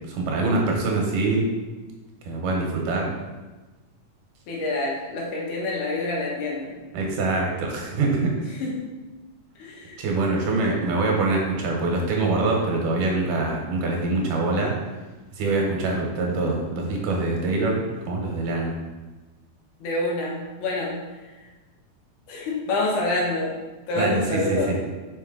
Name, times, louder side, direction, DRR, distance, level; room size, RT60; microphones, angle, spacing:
voice 1, 0.1-1.5 2.3-3.1 6.9-8.3 10.0-14.7 15.4-17.8 18.1-18.7 23.9-24.8, right 3 dB, 85° right, -1 dB, 2.7 m, -24 dB
voice 2, 4.5-6.8 8.6-8.8 9.6-10.0 19.8-21.0 22.3-23.5 23.9-24.7, left 2 dB, 75° left, -3 dB, 2.7 m, -27 dB
5.6 x 5.3 x 3.8 m, 1.2 s
omnidirectional pair, 3.7 m